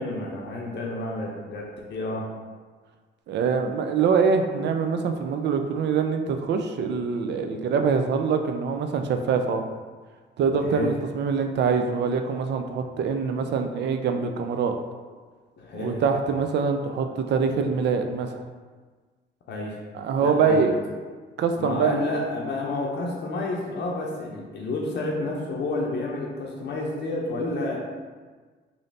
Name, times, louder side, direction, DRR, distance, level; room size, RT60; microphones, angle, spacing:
voice 1, 0.0-2.3 10.6-10.9 15.6-16.0 19.5-19.8 20.2-20.7 21.6-27.8, left 2 dB, 60° left, -2 dB, 0.6 m, -30 dB
voice 2, 3.3-9.6 10.4-14.8 15.7-18.4 19.9-20.7 21.4-22.1, right 5 dB, 60° right, 6 dB, 0.4 m, -24 dB
3.1 x 2.7 x 4.0 m, 1.4 s
cardioid pair, 90°, 20 cm